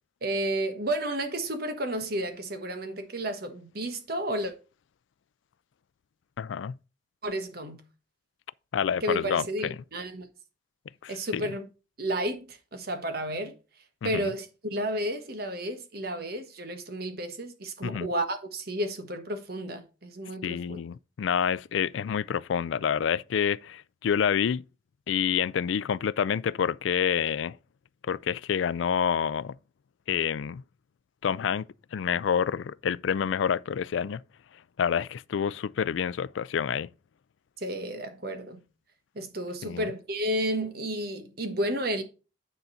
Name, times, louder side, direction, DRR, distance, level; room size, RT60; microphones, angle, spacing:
voice 1, 0.2-4.5 7.2-7.8 9.0-10.3 11.1-11.7 12.0-13.5 14.0-20.8 37.6-38.6 39.1-42.0, right 1 dB, 55° right, 1.4 m, -32 dB
voice 2, 6.4-6.7 8.7-9.7 11.0-11.4 14.0-14.3 17.8-18.1 20.4-24.6 25.1-27.5 28.1-29.5 30.1-30.6 31.2-31.6 31.9-34.2 34.8-36.9 39.6-39.9, left 7 dB, 90° left, 0.4 m, -28 dB
9.4 x 3.9 x 5.6 m
head